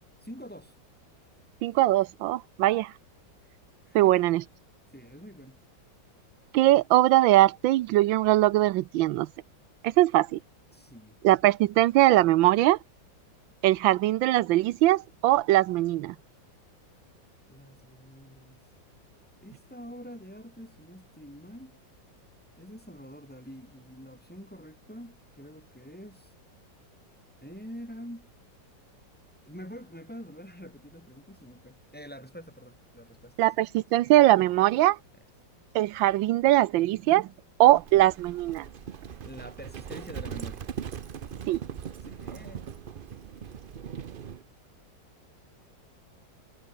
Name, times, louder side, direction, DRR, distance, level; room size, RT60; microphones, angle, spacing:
voice 1, 0.2-0.7 3.9-4.2 4.9-5.6 10.7-11.2 17.5-18.6 19.4-21.8 22.6-26.3 27.4-28.3 29.4-33.3 39.2-40.6 42.0-42.7, equal, 5° left, 3.5 m, -46 dB
voice 2, 1.6-2.9 3.9-4.4 6.5-9.3 9.8-10.4 11.2-12.8 13.6-16.1 33.4-35.0 35.7-37.3 37.6-38.7 41.5-41.6, right 15 dB, 85° right, 1.4 m, -21 dB
Livestock farm animals working animals, 37.8-44.4, right 8 dB, 65° right, 0.5 m, -40 dB
omnidirectional pair, 2.0 m